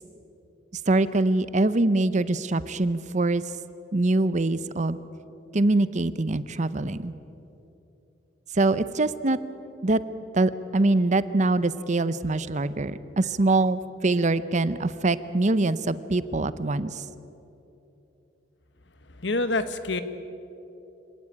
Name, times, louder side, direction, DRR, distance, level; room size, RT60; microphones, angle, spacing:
voice 1, 0.9-3.4 3.9-5.0 5.5-7.1 8.5-9.4 9.8-10.0 10.3-17.0, right 2 dB, 40° right, 15 dB, 0.7 m, -24 dB
voice 2, 19.2-20.0, left 2 dB, 70° left, 11 dB, 1.3 m, -26 dB
25.5 x 17.5 x 8.6 m, 3.0 s
head